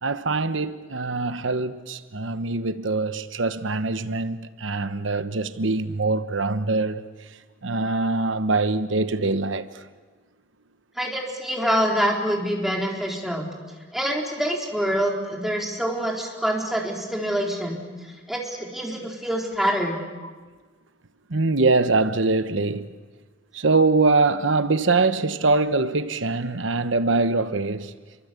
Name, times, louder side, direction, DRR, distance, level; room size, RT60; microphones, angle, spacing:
voice 1, 0.0-7.0 7.6-9.8 21.3-22.9 23.5-27.9, right 3 dB, 85° right, 1.1 m, -23 dB
voice 2, 11.0-13.5 13.9-17.8 18.3-20.0, equal, ahead, 4.1 m, -25 dB
29.0 x 23.5 x 8.3 m
head